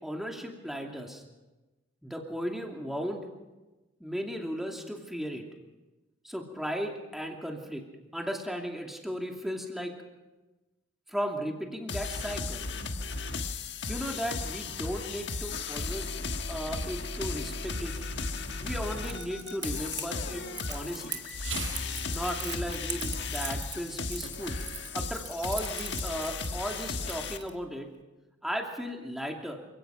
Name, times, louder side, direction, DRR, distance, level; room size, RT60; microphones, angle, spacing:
voice 1, 0.0-1.2 2.0-3.3 4.0-5.5 6.2-7.8 8.1-9.9 11.1-12.7 13.9-16.2 16.5-17.9 18.6-21.2 22.1-24.6 24.9-27.9 28.4-29.6, equal, ahead, 1 dB, 2.6 m, -36 dB
sound 1, 11.9-27.4, left 4 dB, 60° left, 1.5 m, -35 dB
Insect, 17.5-22.5, right 6 dB, 90° right, 7.0 m, -46 dB
Crackle, 19.0-27.5, right 6 dB, 20° right, 1.6 m, -41 dB
28.0 x 17.0 x 5.8 m, 1.1 s
head